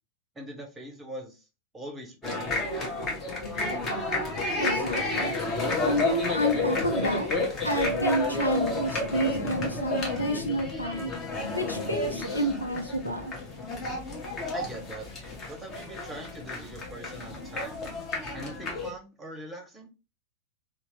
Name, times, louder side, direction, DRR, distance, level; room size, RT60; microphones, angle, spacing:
voice 1, 0.3-1.4 1.7-2.7 14.5-15.1 15.5-17.8 18.3-19.9, right 1 dB, 10° right, 0.9 m, -42 dB
sound 1, 2.2-18.9, left 2 dB, 25° left, 0.9 m, -31 dB
voice 2, 4.6-5.4 5.8-7.3 7.6-11.1 11.6-13.4, equal, 85° left, 0.5 m, -29 dB
2.9 x 2.0 x 3.0 m
figure-of-eight pair, 90°, 0 cm